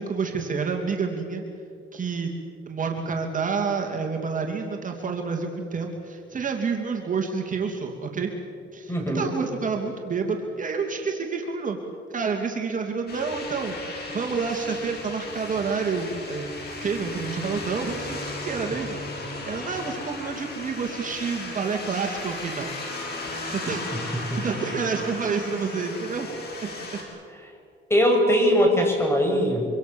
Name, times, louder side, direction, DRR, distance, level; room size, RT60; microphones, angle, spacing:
voice 1, 0.0-1.4 1.9-2.3 2.7-8.3 8.7-11.8 12.1-13.7 14.1-16.5 16.8-22.7 23.5-26.3 26.6-26.7, right 5 dB, 40° right, 2 dB, 2.8 m, -29 dB
voice 2, 8.9-9.3 23.7-23.8 24.3-24.4 27.9-29.7, equal, 10° left, 2 dB, 7.0 m, -21 dB
sound 1, 13.1-27.0, left 2 dB, 55° left, 7.0 m, -36 dB
25.5 x 25.0 x 7.2 m, 2.4 s
cardioid pair, 90°, 20 cm